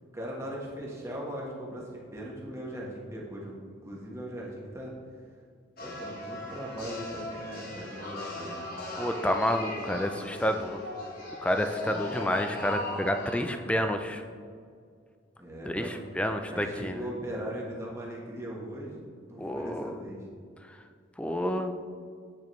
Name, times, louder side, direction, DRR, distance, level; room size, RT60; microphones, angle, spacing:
voice 1, 0.1-4.9 5.8-8.8 15.4-16.0 16.5-20.2, equal, 15° right, -4 dB, 1.2 m, -39 dB
sound 1, 5.8-13.4, left 1 dB, 50° left, 1.3 m, -38 dB
voice 2, 9.0-10.8 11.4-14.2 15.7-17.0 19.4-20.0 21.2-21.7, equal, 5° left, 6 dB, 0.3 m, -29 dB
9.2 x 5.2 x 3.1 m, 2.1 s
head